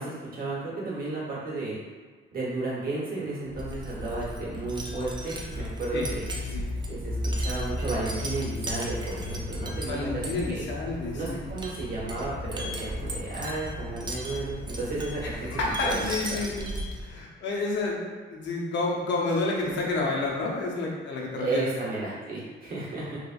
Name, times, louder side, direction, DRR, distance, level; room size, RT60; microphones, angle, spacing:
voice 1, 0.0-1.8 2.3-6.3 6.9-10.6 11.1-16.1 16.4-16.5 21.4-23.2, right 2 dB, 45° right, -6 dB, 1.1 m, -33 dB
Wind chime, 3.5-17.2, equal, 20° right, 0.4 m, -34 dB
voice 2, 6.3-6.7 9.9-11.4 15.4-16.7 17.0-21.7, left 3 dB, 65° left, -3 dB, 0.7 m, -30 dB
2.8 x 2.4 x 2.5 m, 1.5 s
cardioid pair, 90°, 20 cm